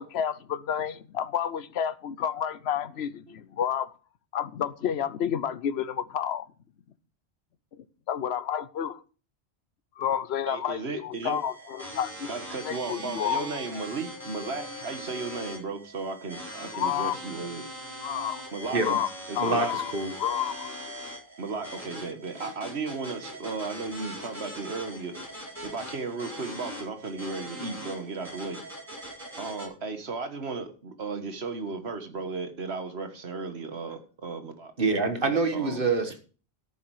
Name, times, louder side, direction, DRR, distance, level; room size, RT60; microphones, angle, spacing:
voice 1, 0.0-3.9 4.3-6.5 8.1-9.0 10.0-12.3 12.6-13.5 16.7-17.2 18.0-18.4 18.8-19.1 19.3-19.9 20.2-20.7, left 9 dB, 75° left, 1.0 m, -30 dB
voice 2, 10.5-11.4 12.3-17.7 18.5-18.8 19.3-19.7 21.4-25.2 25.6-28.6 29.4-34.7 35.5-35.8, right 4 dB, 70° right, 1.7 m, -35 dB
sound 1, 11.1-29.7, equal, 15° right, 4.5 m, -41 dB
voice 3, 19.4-20.1 34.8-36.2, right 3 dB, 55° right, 1.6 m, -26 dB
13.5 x 7.1 x 4.8 m
omnidirectional pair, 1.1 m